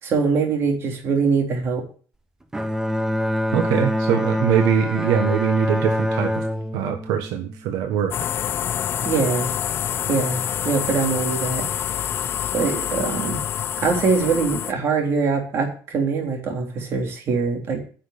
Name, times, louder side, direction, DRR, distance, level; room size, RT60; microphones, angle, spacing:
voice 1, 0.0-1.8 9.0-9.5 10.1-10.4 10.6-11.7 12.5-13.4 13.8-17.8, right 5 dB, 45° right, 2 dB, 3.5 m, -23 dB
Bowed string instrument, 2.5-8.0, left 1 dB, 10° right, 0.9 m, -25 dB
voice 2, 3.5-6.4 6.7-8.1, right 8 dB, 80° right, 6 dB, 1.4 m, -22 dB
sound 1, 8.1-14.7, left 9 dB, 40° left, 0.5 m, -27 dB
10.0 x 6.4 x 8.4 m, 0.41 s
cardioid pair, 155°, 6 cm